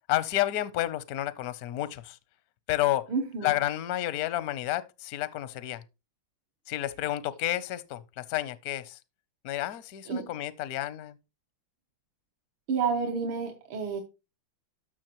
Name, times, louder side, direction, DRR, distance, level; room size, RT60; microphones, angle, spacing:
voice 1, 0.1-2.2 2.7-3.1 3.4-5.8 6.7-9.0 9.4-11.2, left 14 dB, 70° left, 0.8 m, -30 dB
voice 2, 3.1-3.5 10.1-10.3 12.7-14.0, right 5 dB, 75° right, 1.9 m, -30 dB
13.0 x 6.2 x 2.9 m
omnidirectional pair, 2.3 m